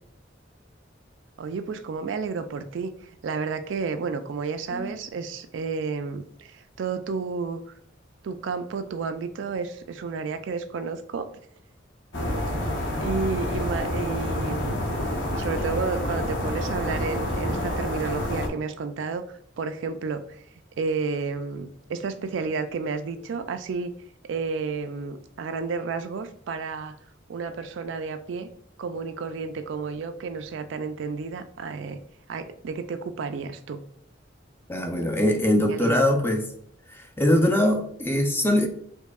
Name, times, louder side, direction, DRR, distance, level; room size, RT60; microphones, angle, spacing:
voice 1, 1.4-2.9 3.2-7.6 8.2-11.3 13.0-14.9 15.4-19.2 19.6-20.4 20.8-23.9 24.2-27.0 27.3-28.5 28.8-32.0 32.3-33.8 35.7-36.0, right 5 dB, 70° right, 9 dB, 0.4 m, -31 dB
sound 1, 12.1-18.5, left 1 dB, 75° left, 0.9 m, -28 dB
voice 2, 34.7-36.5 36.9-38.7, left 1 dB, 10° left, 3 dB, 0.5 m, -22 dB
4.6 x 2.7 x 2.3 m, 0.67 s
head